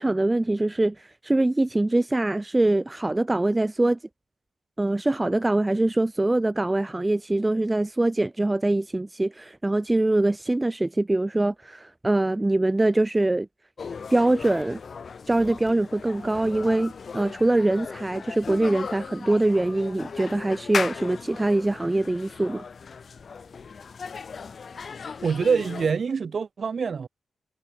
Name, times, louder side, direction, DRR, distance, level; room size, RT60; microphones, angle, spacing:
voice 1, 0.0-4.0 4.8-13.5 14.1-14.8 15.3-22.6, right 2 dB, 15° right, 0.3 m, -23 dB
sound 1, 13.8-25.9, left 5 dB, 50° left, 4.2 m, -37 dB
voice 2, 25.2-27.1, right 5 dB, 50° right, 1.1 m, -25 dB
wide cardioid pair, 165°, 0 cm